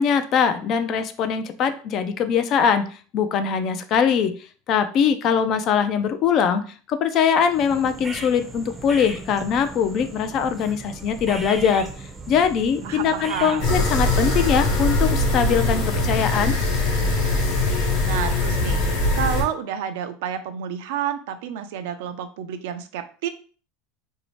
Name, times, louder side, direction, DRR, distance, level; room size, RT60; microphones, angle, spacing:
voice 1, 0.0-2.9 3.1-4.3 4.7-11.9 12.3-16.5, left 7 dB, 45° left, 9 dB, 0.3 m, -22 dB
sound 1, 7.5-14.7, right 2 dB, 10° right, 0.5 m, -38 dB
voice 2, 12.8-13.9 18.1-18.8 19.1-23.3, right 8 dB, 75° right, 9 dB, 0.3 m, -30 dB
sound 2, 13.6-19.4, left 2 dB, 60° left, 0.9 m, -21 dB
2.7 x 2.0 x 3.0 m, 0.40 s
supercardioid pair, 135°, 0 cm